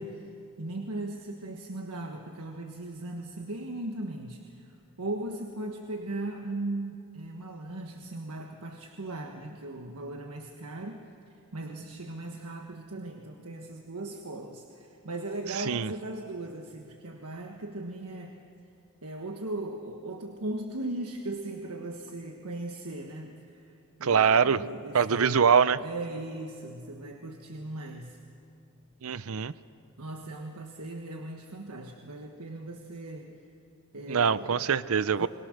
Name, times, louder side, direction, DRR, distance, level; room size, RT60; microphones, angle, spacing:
voice 1, 0.0-4.7 5.0-11.1 11.5-18.4 19.0-25.5 25.8-28.2 30.0-33.4 33.9-34.7 35.2-35.3, right 2 dB, 85° right, 3 dB, 1.4 m, -38 dB
voice 2, 15.5-15.9 24.0-24.6 24.9-25.8 29.0-29.5 34.1-35.3, right 6 dB, 65° right, 17 dB, 0.6 m, -23 dB
29.0 x 22.5 x 6.6 m, 2.5 s
head